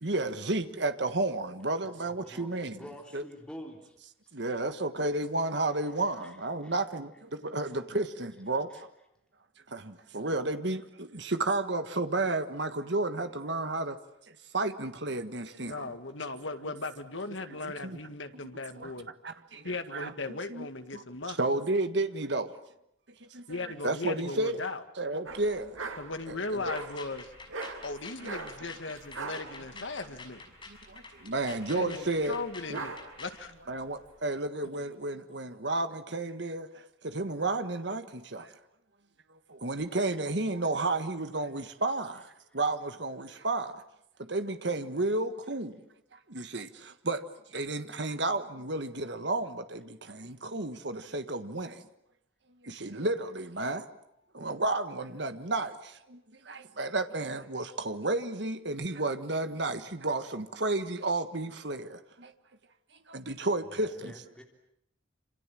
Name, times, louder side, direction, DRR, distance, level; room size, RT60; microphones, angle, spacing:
voice 1, 0.0-2.9 3.1-3.2 4.3-8.9 9.7-14.0 14.3-15.9 17.6-18.0 18.3-18.4 18.8-18.9 19.2-20.7 20.9-22.5 23.2-24.6 25.0-25.9 26.3-26.6 30.7-32.4 32.7-32.8 33.7-38.5 39.3-43.8 44.2-45.8 46.1-47.2 47.5-51.8 52.6-53.8 54.3-62.3 63.1-64.1, right 2 dB, 60° right, 1.5 m, -32 dB
voice 2, 2.0-4.0 4.7-4.8 6.2-6.7 8.7-8.8 63.6-64.4, equal, 5° left, 3.4 m, -48 dB
voice 3, 15.6-19.1 19.6-21.4 23.5-24.8 26.0-27.3 27.8-30.4 31.7-33.5, left 3 dB, 75° left, 2.0 m, -37 dB
sound 1, 25.3-34.2, right 3 dB, 90° right, 2.8 m, -42 dB
sound 2, 26.5-33.4, left 3 dB, 25° left, 5.9 m, -47 dB
27.0 x 27.0 x 7.7 m
head